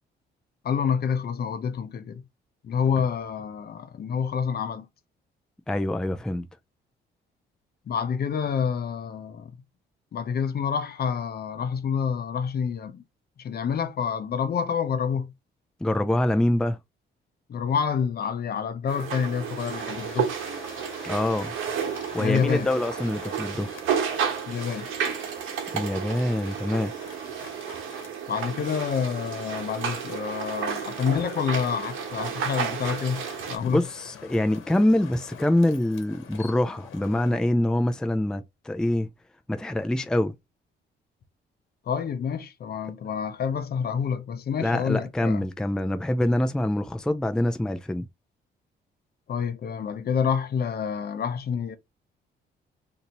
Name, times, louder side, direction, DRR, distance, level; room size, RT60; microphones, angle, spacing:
voice 1, 0.6-2.2 2.6-4.9 7.9-9.6 10.1-13.0 13.4-15.3 17.5-20.3 22.2-22.7 24.5-24.9 28.3-33.8 41.9-45.4 49.3-51.8, left 7 dB, 50° left, 0.7 m, -28 dB
voice 2, 5.7-6.5 15.8-16.8 21.0-21.5 22.1-23.7 25.7-26.9 33.7-39.1 39.5-40.3 44.6-48.1, left 1 dB, 5° left, 0.4 m, -25 dB
sound 1, 18.9-33.6, right 7 dB, 85° right, 1.0 m, -32 dB
sound 2, 19.6-37.4, left 8 dB, 85° left, 1.0 m, -47 dB
2.8 x 2.7 x 4.1 m
cardioid pair, 90°, 20 cm